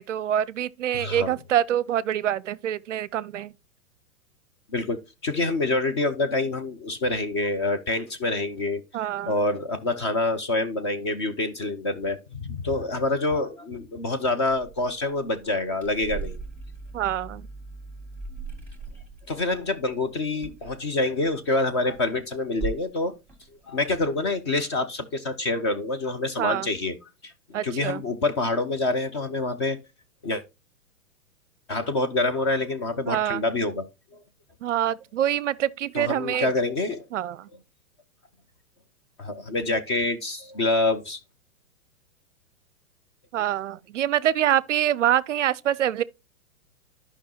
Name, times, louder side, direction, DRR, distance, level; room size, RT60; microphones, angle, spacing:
voice 1, 0.0-3.5 8.9-9.3 16.9-17.5 26.4-26.7 27.5-28.0 33.1-33.4 34.6-36.5 37.1-37.5 43.3-46.0, right 11 dB, 55° right, 0.5 m, -25 dB
voice 2, 0.9-1.4 4.7-8.8 9.3-16.4 19.3-23.1 23.7-26.9 27.2-27.3 27.6-29.8 30.2-30.4 31.7-33.9 34.1-34.2 35.9-37.0 39.2-41.2, left 2 dB, 20° left, 0.4 m, -26 dB
sound 1, 14.5-21.4 21.7-22.2 22.6-23.0 23.3-24.5, right 3 dB, 5° left, 2.0 m, -39 dB
12.0 x 5.5 x 2.8 m
figure-of-eight pair, 110°, 44 cm